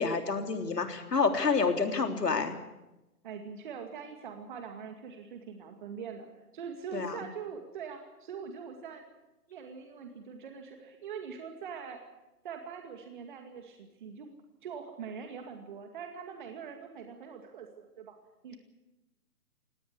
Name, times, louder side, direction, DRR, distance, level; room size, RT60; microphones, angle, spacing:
voice 1, 0.0-2.5 6.9-7.1, left 4 dB, 85° left, 6 dB, 3.7 m, -28 dB
voice 2, 3.2-6.3 6.5-9.0 9.5-12.0 12.4-14.3 14.6-18.2 18.4-18.6, right 6 dB, 30° right, 4 dB, 2.3 m, -43 dB
18.5 x 18.5 x 10.0 m, 0.97 s
hypercardioid pair, 160°, 47 cm